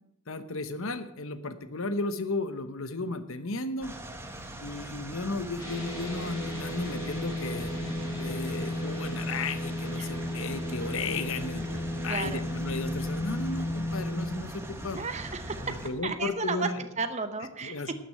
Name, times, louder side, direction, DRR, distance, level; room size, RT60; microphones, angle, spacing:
voice 1, 0.3-3.9 4.6-7.7 8.2-11.7 12.0-15.0 15.6-16.9 17.6-17.9, left 3 dB, 65° left, 12 dB, 1.0 m, -34 dB
sound 1, 3.8-15.9, right 1 dB, 10° right, 1.2 m, -41 dB
sound 2, 5.6-14.3, left 1 dB, 15° left, 5.0 m, -34 dB
voice 2, 12.1-12.5 14.9-16.7 17.0-17.9, right 4 dB, 30° right, 8 dB, 0.8 m, -34 dB
12.0 x 6.8 x 8.8 m, 0.84 s
head